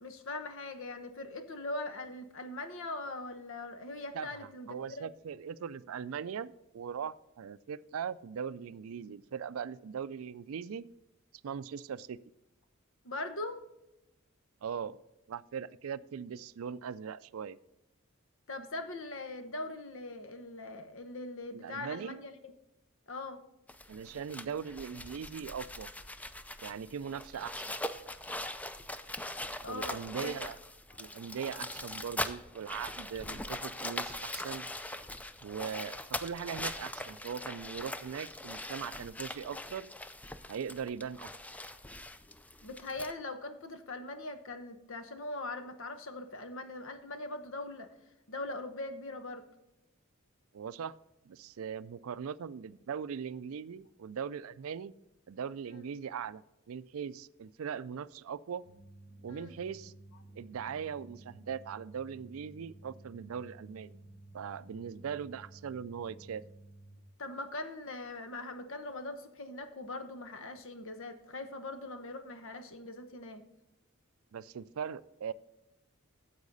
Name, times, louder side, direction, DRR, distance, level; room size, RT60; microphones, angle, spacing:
voice 1, 0.0-5.1 13.0-13.6 18.5-22.3 23.1-23.4 29.6-30.3 42.6-47.9 48.3-49.4 55.7-55.8 59.3-59.5 67.2-73.4, left 2 dB, 65° left, 9 dB, 1.0 m, -41 dB
voice 2, 4.1-10.9 11.4-12.2 14.6-15.0 15.3-17.6 21.5-22.2 23.9-25.9 26.6-27.6 29.7-30.6 31.0-34.7 35.4-39.9 40.5-41.3 50.5-50.9 51.3-54.9 55.3-58.6 59.2-59.9 60.4-64.0 64.3-66.4 74.3-75.3, right 7 dB, 75° right, 17 dB, 0.4 m, -40 dB
sound 1, 23.7-43.1, left 1 dB, 5° left, 0.4 m, -41 dB
sound 2, 58.6-67.0, right 2 dB, 45° left, 3.3 m, -54 dB
9.8 x 7.4 x 4.0 m, 0.90 s
head